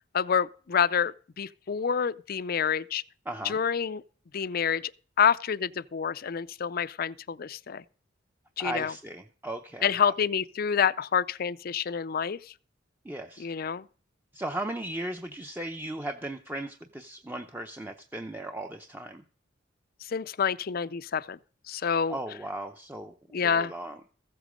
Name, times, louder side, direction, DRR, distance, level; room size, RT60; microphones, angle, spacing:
voice 1, 0.1-3.0 3.4-4.0 4.3-4.9 5.2-7.8 8.6-8.9 9.8-12.5 13.4-13.8 20.1-21.4 21.7-22.2 23.3-23.7, left 7 dB, 50° left, 0.5 m, -28 dB
voice 2, 3.3-3.6 8.6-9.9 13.0-13.5 14.3-19.2 22.1-23.1 23.4-24.0, right 1 dB, 10° right, 0.7 m, -36 dB
15.0 x 8.1 x 5.2 m
head